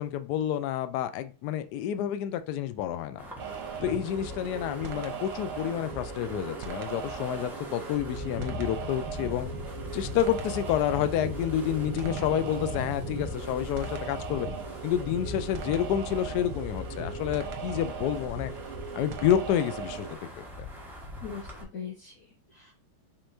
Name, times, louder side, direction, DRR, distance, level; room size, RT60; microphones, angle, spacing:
voice 1, 0.0-3.2 3.8-9.5 9.9-14.5 14.8-18.5 18.9-20.4, left 10 dB, 80° left, 11 dB, 0.9 m, -29 dB
Wind, 3.2-21.6, left 1 dB, ahead, 0.8 m, -40 dB
sound 1, 3.4-20.2, right 7 dB, 85° right, 1.6 m, -39 dB
voice 2, 21.2-22.7, left 7 dB, 55° left, -4 dB, 1.5 m, -41 dB
5.5 x 3.6 x 2.6 m, 0.34 s
omnidirectional pair, 2.3 m